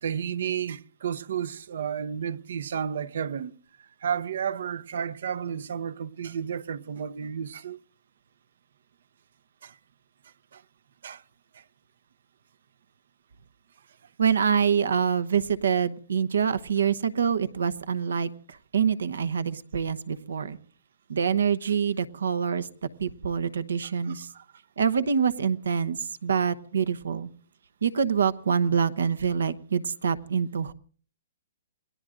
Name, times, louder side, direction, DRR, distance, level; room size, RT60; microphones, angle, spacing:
voice 1, 0.0-3.5 3.8-7.8 9.6-9.8 10.5-10.6 11.0-11.2 11.5-11.6 23.8-24.4, right 8 dB, 70° right, 0.7 m, -32 dB
voice 2, 14.2-20.6 21.1-22.7 23.0-24.3 24.8-27.3 27.8-30.7, right 7 dB, 90° right, 1.0 m, -26 dB
28.5 x 20.0 x 2.5 m
hypercardioid pair, 155°, 0 cm